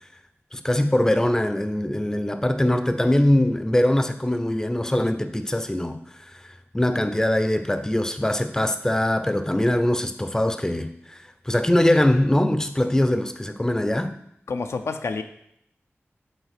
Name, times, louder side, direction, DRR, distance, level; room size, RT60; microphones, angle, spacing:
voice 1, 0.5-6.0 6.3-6.4 6.7-11.2 11.5-14.1, left 1 dB, 10° left, 0.5 m, -22 dB
voice 2, 14.5-15.2, left 4 dB, 80° left, 0.5 m, -28 dB
5.5 x 4.0 x 5.9 m
wide cardioid pair, 55°, 5 cm